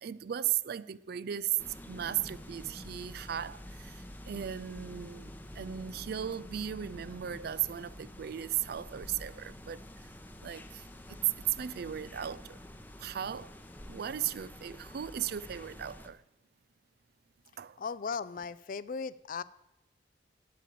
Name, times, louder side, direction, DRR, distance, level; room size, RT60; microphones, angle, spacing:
voice 1, 0.0-1.6 1.9-9.8 10.4-11.2 11.6-12.6 13.0-13.5 13.9-16.2 17.6-17.8, right 10 dB, 55° right, 0.4 m, -37 dB
sound 1, 1.6-16.1, left 1 dB, 10° left, 0.8 m, -48 dB
voice 2, 17.8-19.4, left 5 dB, 50° left, 0.4 m, -37 dB
8.5 x 8.5 x 7.5 m
head